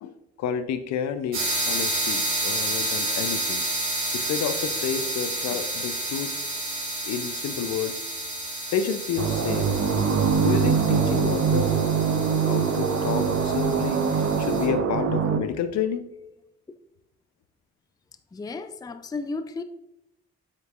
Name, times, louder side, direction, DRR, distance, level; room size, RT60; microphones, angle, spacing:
voice 1, 0.0-3.6 4.1-6.3 7.0-7.9 8.7-9.7 10.4-11.7 12.5-16.1, left 7 dB, 60° left, 0.7 m, -30 dB
sound 1, 1.3-14.7, right 2 dB, 80° right, 1.8 m, -30 dB
sound 2, 9.2-15.4, right 6 dB, 50° right, 0.9 m, -23 dB
voice 2, 18.3-19.6, left 3 dB, 10° left, 0.5 m, -33 dB
8.5 x 7.4 x 2.4 m
figure-of-eight pair, 40°, 32 cm